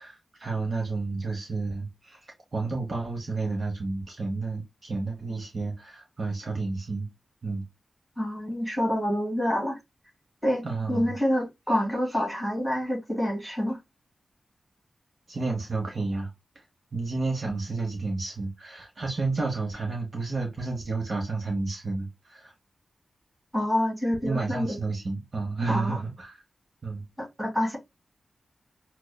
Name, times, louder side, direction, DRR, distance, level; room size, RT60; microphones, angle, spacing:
voice 1, 0.0-7.1 7.4-7.6 10.6-11.2 15.3-16.3 16.5-16.6 16.9-22.5 24.2-26.4 26.8-27.0, right 3 dB, 45° right, 0.9 m, -31 dB
voice 2, 8.2-9.8 10.4-13.8 23.5-24.8 25.7-26.0 27.2-27.8, equal, 5° right, 2.0 m, -27 dB
6.0 x 2.1 x 2.2 m
wide cardioid pair, 135°, 0 cm